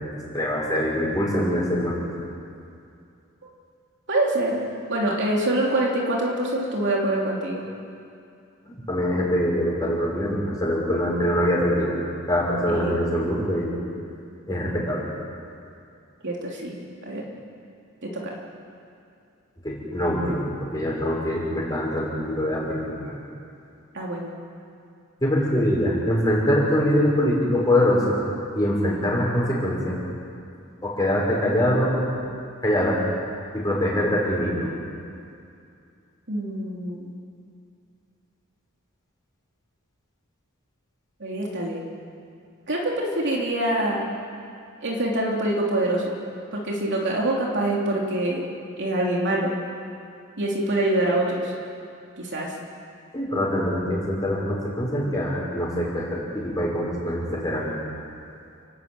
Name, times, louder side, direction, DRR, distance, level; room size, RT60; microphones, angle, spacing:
voice 1, 0.0-1.9 8.6-11.9 12.3-13.8 14.5-15.0 19.6-20.4 20.7-22.8 23.0-23.1 25.2-28.2 28.5-30.0 30.8-32.0 32.6-33.0 33.5-34.7 53.1-57.7, equal, 20° left, -4 dB, 6.1 m, -23 dB
voice 2, 4.1-4.6 4.9-7.6 12.7-13.0 16.2-16.7 17.0-17.2 18.0-18.3 23.9-24.3 36.3-37.1 41.2-41.8 42.7-44.1 44.8-46.0 46.5-48.5 48.8-49.5 50.4-51.5 52.2-52.5, right 1 dB, 55° right, -2 dB, 3.3 m, -25 dB
29.5 x 12.5 x 8.9 m, 2.5 s
head